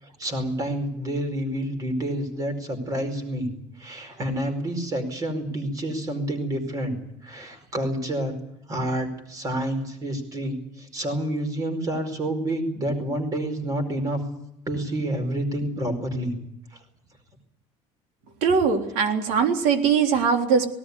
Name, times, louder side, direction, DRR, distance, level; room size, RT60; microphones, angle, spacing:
voice 1, 0.0-3.5 3.8-8.4 8.7-14.2 14.7-16.3, right 1 dB, 30° right, 7 dB, 4.8 m, -28 dB
voice 2, 18.4-20.7, right 6 dB, 80° right, 4 dB, 3.7 m, -21 dB
18.5 x 18.0 x 9.7 m, 0.79 s
cardioid pair, 170°, 13 cm